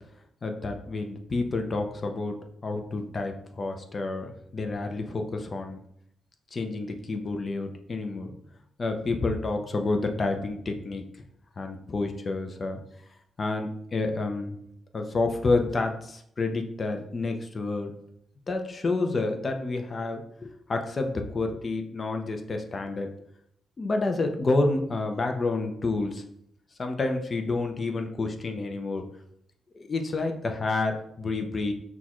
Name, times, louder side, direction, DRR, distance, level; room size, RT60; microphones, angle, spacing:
voice 1, 0.4-2.4 2.6-5.8 6.5-8.3 8.8-11.0 11.6-12.8 13.4-14.6 14.9-17.9 18.5-23.1 23.8-26.2 26.8-29.0 29.8-31.7, left 3 dB, 35° left, 4 dB, 0.6 m, -29 dB
6.1 x 2.4 x 3.0 m, 0.71 s
cardioid pair, 115°, 0 cm